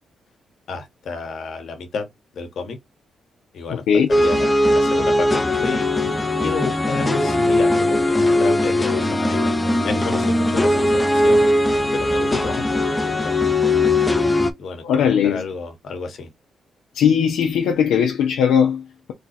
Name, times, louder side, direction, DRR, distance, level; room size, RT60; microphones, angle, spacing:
voice 1, 0.7-2.8 3.5-11.4 11.9-12.6 12.9-13.4 14.1-16.3, left 4 dB, 65° left, 1.2 m, -31 dB
voice 2, 3.7-4.1 12.3-12.6 14.8-15.4 16.9-19.1, left 7 dB, 90° left, 0.7 m, -19 dB
sound 1, 4.1-14.5, left 1 dB, 20° left, 0.7 m, -19 dB
3.3 x 2.3 x 4.1 m
cardioid pair, 75°, 0 cm